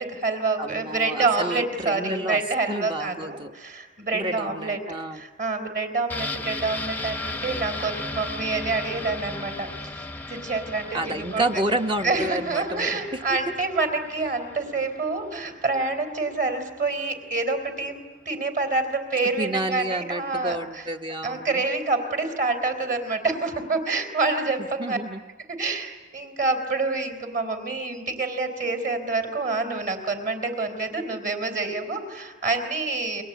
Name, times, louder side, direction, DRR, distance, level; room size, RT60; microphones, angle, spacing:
voice 1, 0.0-4.8 5.1-9.7 10.0-11.6 12.0-18.0 18.3-20.8 21.2-25.0 25.6-33.2, right 3 dB, 45° right, 6 dB, 4.0 m, -27 dB
voice 2, 0.6-2.4 2.7-3.5 4.1-5.2 10.9-13.2 19.4-21.6 24.8-25.2, right 1 dB, 25° right, 5 dB, 1.0 m, -30 dB
sound 1, 6.1-15.7 16.0-16.1, left 2 dB, 10° left, 0.8 m, -36 dB
30.0 x 23.5 x 8.3 m, 1.4 s
head